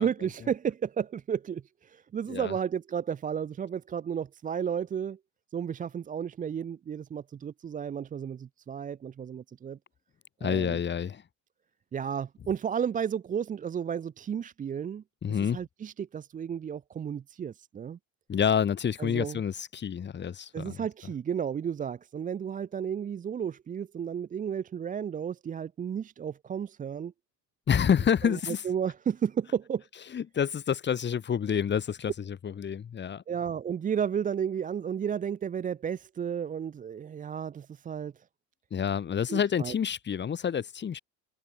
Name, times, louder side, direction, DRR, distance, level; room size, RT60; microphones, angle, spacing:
voice 1, 0.0-5.2 5.5-9.8 10.4-10.8 11.9-15.0 15.3-18.0 19.0-19.4 20.5-27.1 28.2-29.8 33.3-38.2 39.3-39.7, right 8 dB, 20° right, 0.6 m, -33 dB
voice 2, 10.4-11.2 15.2-15.6 18.3-20.8 27.7-28.6 30.1-33.2 38.7-41.0, left 8 dB, 25° left, 2.4 m, -28 dB
cardioid pair, 140°, 41 cm